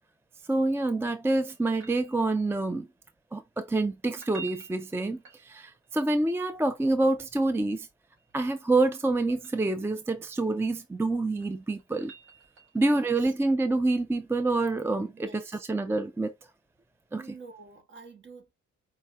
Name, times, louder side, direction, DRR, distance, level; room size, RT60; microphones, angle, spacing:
voice 1, 0.5-2.9 3.3-7.9 8.3-12.1 12.7-16.3 17.1-17.2, right 2 dB, 10° right, 0.4 m, -27 dB
sound 1, 1.4-2.6 4.1-5.9 8.0-9.7 11.1-13.2 15.9-16.0, right 6 dB, 60° right, 3.3 m, -49 dB
voice 2, 12.7-13.1 15.0-15.6 17.1-18.5, right 4 dB, 40° right, 1.3 m, -48 dB
4.9 x 2.6 x 3.3 m
cardioid pair, 90°, 30 cm